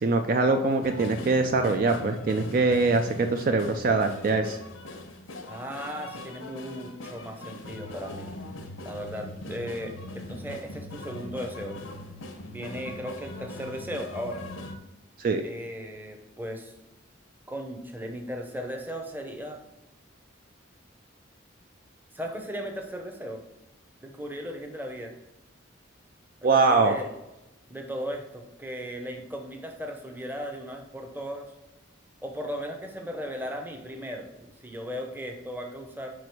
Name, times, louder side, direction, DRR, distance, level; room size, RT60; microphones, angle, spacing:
voice 1, 0.0-4.6 15.2-15.4 26.4-26.9, right 3 dB, 45° right, 5 dB, 0.4 m, -23 dB
sound 1, 0.8-14.8, left 1 dB, 85° left, 0.8 m, -41 dB
voice 2, 5.4-8.3 8.8-11.8 12.5-14.4 15.4-16.7 17.5-19.6 22.1-23.4 24.0-25.1 26.4-27.1 27.7-31.5 32.2-36.1, equal, 10° right, 3 dB, 0.7 m, -36 dB
5.0 x 4.7 x 4.7 m, 0.92 s
head